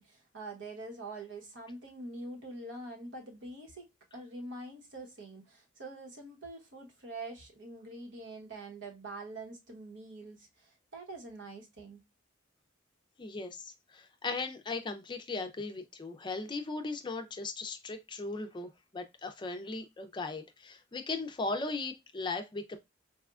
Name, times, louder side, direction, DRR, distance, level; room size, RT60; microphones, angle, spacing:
voice 1, 0.0-3.9 4.1-12.0, right 2 dB, 70° right, 1.1 m, -45 dB
voice 2, 13.2-22.8, left 3 dB, 25° left, 0.4 m, -38 dB
4.1 x 2.2 x 2.3 m
head